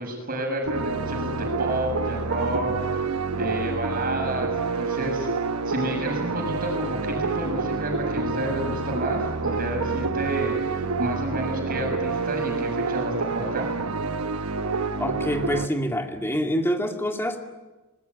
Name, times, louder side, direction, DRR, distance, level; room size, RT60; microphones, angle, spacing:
voice 1, 0.0-3.1 3.4-5.3 5.7-13.7, right 1 dB, 40° right, 2 dB, 7.0 m, -30 dB
sound 1, 0.7-15.7, right 4 dB, 90° right, 1.1 m, -28 dB
voice 2, 15.0-17.4, equal, 10° left, 4 dB, 2.2 m, -26 dB
24.5 x 20.0 x 9.6 m, 1.2 s
head